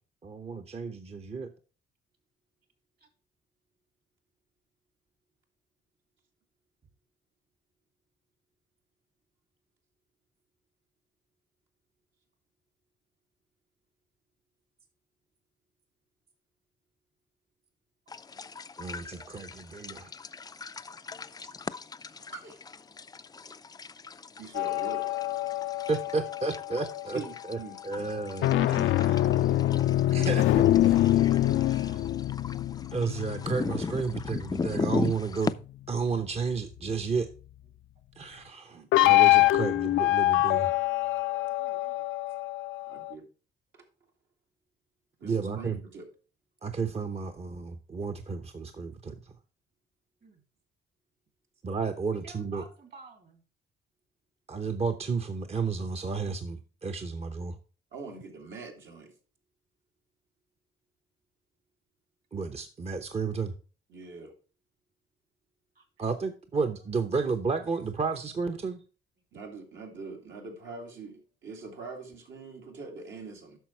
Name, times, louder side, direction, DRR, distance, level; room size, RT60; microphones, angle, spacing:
voice 1, 0.2-1.5 18.8-20.1 25.9-27.2 27.5-29.3 30.1-30.4 31.0-32.0 32.9-35.6 35.9-37.3 38.2-40.8 45.2-45.8 46.6-49.3 51.6-52.6 54.5-57.6 62.3-63.5 66.0-68.8, right 4 dB, 30° right, 7 dB, 0.8 m, -32 dB
sound 1, 18.1-35.5, left 4 dB, 20° left, 0.4 m, -38 dB
voice 2, 22.3-22.6 24.4-25.1 27.1-28.1 28.7-29.2 30.2-30.6 38.7-38.9 42.9-43.3 45.2-46.1 57.9-59.1 63.9-64.3 69.3-73.6, right 4 dB, 70° right, 1 dB, 2.5 m, -43 dB
sound 2, 24.5-27.2 28.2-35.1 38.9-43.1, left 15 dB, 80° left, 0.4 m, -25 dB
voice 3, 41.5-42.1 50.2-50.4 52.1-53.4 65.7-65.8, right 4 dB, 50° right, 5 dB, 3.0 m, -52 dB
9.1 x 6.2 x 4.5 m, 0.37 s
cardioid pair, 90°, 20 cm